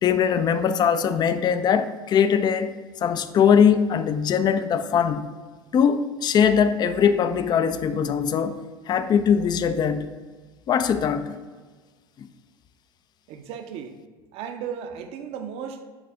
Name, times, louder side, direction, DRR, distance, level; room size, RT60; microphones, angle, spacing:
voice 1, 0.0-2.7 3.0-5.3 5.7-8.6 8.9-10.1 10.7-11.4 12.2-12.3, left 7 dB, 30° left, 0.4 m, -21 dB
voice 2, 13.3-14.0 14.3-15.8, right 7 dB, 50° right, 0.7 m, -35 dB
7.2 x 4.0 x 3.4 m
figure-of-eight pair, 70°, 14 cm